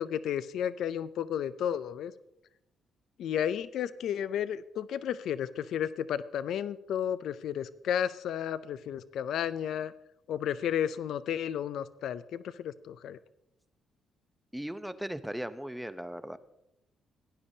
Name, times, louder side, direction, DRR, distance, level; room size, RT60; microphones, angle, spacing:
voice 1, 0.0-2.1 3.2-9.9 10.3-13.2, left 9 dB, 75° left, 15 dB, 0.4 m, -32 dB
voice 2, 14.5-16.4, right 1 dB, 5° right, 11 dB, 0.6 m, -37 dB
17.0 x 10.0 x 2.7 m, 0.86 s
cardioid pair, 90°, 0 cm